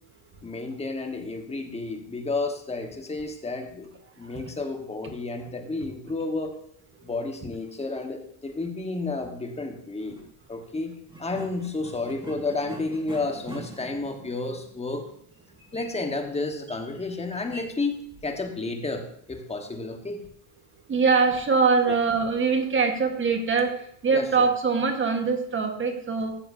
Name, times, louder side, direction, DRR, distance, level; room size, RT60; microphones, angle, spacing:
voice 1, 0.4-6.6 7.0-10.2 10.5-15.1 15.7-20.2 24.1-24.5, left 3 dB, 15° left, 4 dB, 1.3 m, -31 dB
sound 1, 10.0-10.3 11.0-18.6, right 1 dB, 10° right, 3.7 m, -45 dB
voice 2, 20.9-26.4, right 5 dB, 30° right, 6 dB, 1.4 m, -23 dB
13.0 x 7.6 x 2.7 m, 0.68 s
supercardioid pair, 110°, 42 cm